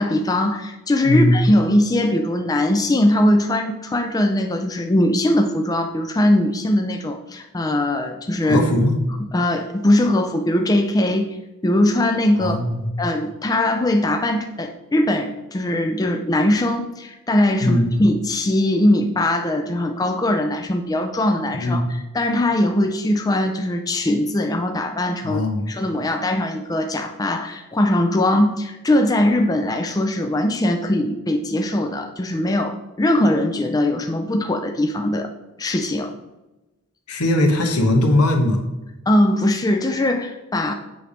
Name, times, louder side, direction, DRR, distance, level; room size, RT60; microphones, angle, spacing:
voice 1, 0.0-8.6 9.3-11.4 11.6-12.6 13.0-35.3 35.6-36.1 39.1-40.7, left 1 dB, 15° left, 5 dB, 0.4 m, -20 dB
voice 2, 8.5-8.9 12.4-12.9 17.6-17.9 21.6-21.9 25.2-25.7 37.1-38.6, left 1 dB, 85° left, 3 dB, 1.1 m, -19 dB
7.6 x 3.3 x 5.1 m, 1.0 s
head